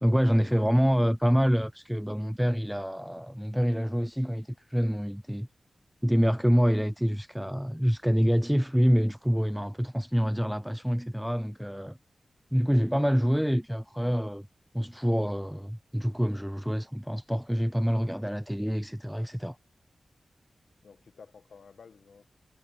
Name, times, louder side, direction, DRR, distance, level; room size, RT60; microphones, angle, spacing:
voice 1, 0.0-5.5 6.0-12.0 12.5-14.5 14.7-19.6, equal, ahead, 0.4 m, -26 dB
voice 2, 20.8-22.3, left 5 dB, 80° left, 1.6 m, -53 dB
wide cardioid pair, 140°, 0 cm